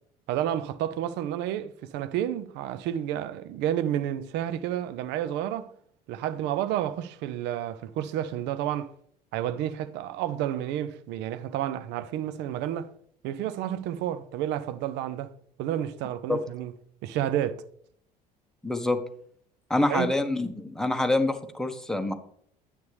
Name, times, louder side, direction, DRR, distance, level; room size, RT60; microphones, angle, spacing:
voice 1, 0.3-5.7 6.1-8.9 9.3-12.9 13.2-15.3 15.6-16.7 17.0-17.6 19.9-20.1, right 11 dB, 55° right, 0.7 m, -30 dB
voice 2, 18.6-19.0 19.7-22.1, left 2 dB, ahead, 1.1 m, -26 dB
9.5 x 8.2 x 3.3 m
figure-of-eight pair, 65°, 21 cm